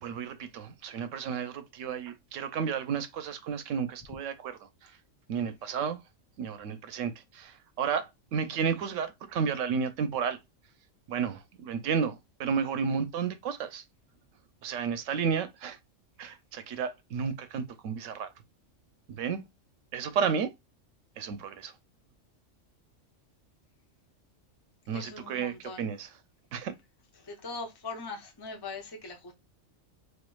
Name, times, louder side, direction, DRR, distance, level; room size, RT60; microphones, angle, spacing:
voice 1, 0.0-5.0 5.3-6.0 6.4-10.4 11.1-13.8 14.6-15.8 16.2-18.3 19.1-19.4 19.9-20.5 21.2-21.7 24.9-26.1 26.5-26.7, right 6 dB, 80° right, 1.0 m, -32 dB
voice 2, 24.9-25.9 27.2-29.3, left 3 dB, 40° left, 0.3 m, -41 dB
4.4 x 2.5 x 2.2 m
omnidirectional pair, 1.3 m